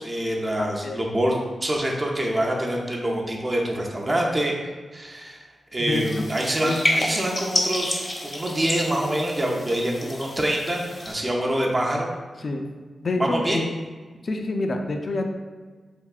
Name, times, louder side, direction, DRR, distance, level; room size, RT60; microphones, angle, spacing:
voice 1, 0.0-4.5 4.9-5.4 5.7-12.1 13.2-13.6, right 1 dB, 35° right, -2 dB, 0.5 m, -25 dB
voice 2, 0.6-1.0 5.8-6.3 6.6-6.8 12.4-12.7 13.0-13.7 14.2-15.3, left 2 dB, 60° left, 4 dB, 0.3 m, -27 dB
sound 1, 5.9-11.1, left 1 dB, 40° left, 0.7 m, -29 dB
3.4 x 2.6 x 2.3 m, 1.4 s
cardioid pair, 50°, 0 cm